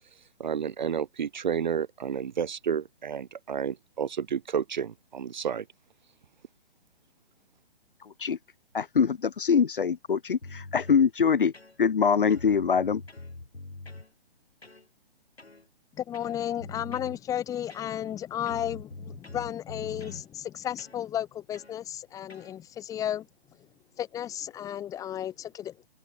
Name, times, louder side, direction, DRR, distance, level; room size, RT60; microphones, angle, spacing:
voice 1, 0.4-5.6, right 7 dB, 45° right, 1.1 m, -31 dB
voice 2, 8.7-11.5 11.8-13.0, left 6 dB, 60° left, 1.0 m, -23 dB
sound 1, 10.4-11.0 11.5-12.0 12.3-14.1 14.6-14.9 15.4-15.6 16.1-17.2 17.7-18.2 18.5-20.3 20.8-21.0 21.5-21.8 22.3-22.5, left 2 dB, 80° left, 3.0 m, -44 dB
voice 3, 16.0-23.3 24.0-25.9, left 10 dB, 10° left, 2.2 m, -33 dB
open air
figure-of-eight pair, 135°, 31 cm